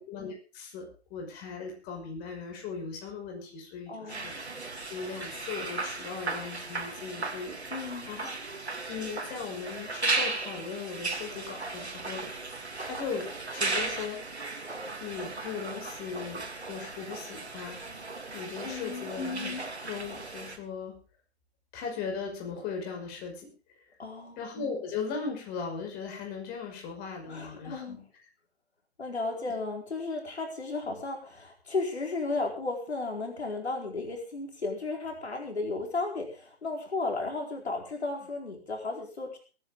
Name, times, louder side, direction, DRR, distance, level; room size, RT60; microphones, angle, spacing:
voice 1, 0.0-4.4 4.9-7.5 8.1-8.4 8.9-12.3 12.8-13.2 13.5-14.2 15.0-17.8 18.3-20.9 21.7-23.5 23.8-23.9 24.4-28.0, left 5 dB, 30° left, 2 dB, 5.9 m, -38 dB
voice 2, 3.9-4.4 7.7-8.1 18.6-19.1 24.0-24.4 27.3-28.0 29.0-39.4, left 3 dB, 80° left, 2 dB, 4.6 m, -34 dB
sound 1, 4.1-20.6, right 3 dB, 90° right, 3.1 m, -36 dB
22.5 x 10.0 x 3.7 m, 0.36 s
figure-of-eight pair, 125°, 32 cm